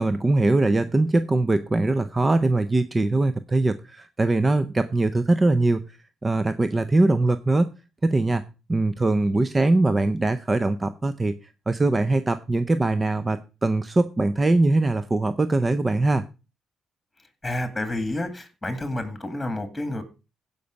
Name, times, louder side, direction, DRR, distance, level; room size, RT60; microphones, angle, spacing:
voice 1, 0.0-6.0 6.2-7.7 8.0-8.4 8.7-11.4 11.7-16.2, right 2 dB, 25° right, 12 dB, 0.6 m, -22 dB
voice 2, 17.4-20.0, left 1 dB, 10° left, 10 dB, 2.1 m, -29 dB
16.0 x 5.4 x 5.2 m, 0.31 s
cardioid pair, 90°, 0 cm